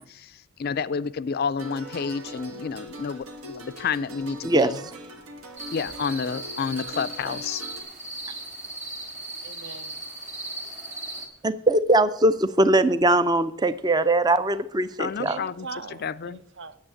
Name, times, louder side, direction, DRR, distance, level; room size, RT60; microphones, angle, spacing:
voice 1, 0.0-4.8 5.7-7.6 15.0-15.7 16.0-16.4, left 6 dB, 45° left, 0.4 m, -30 dB
sound 1, 1.6-7.8, equal, 80° right, 1.5 m, -41 dB
voice 2, 4.4-4.8 11.4-15.4, right 2 dB, 20° right, 0.4 m, -21 dB
sound 2, 5.6-11.3, right 2 dB, 35° right, 2.2 m, -37 dB
voice 3, 9.4-10.0 15.2-16.8, right 5 dB, 55° right, 0.7 m, -40 dB
8.9 x 7.1 x 8.4 m
head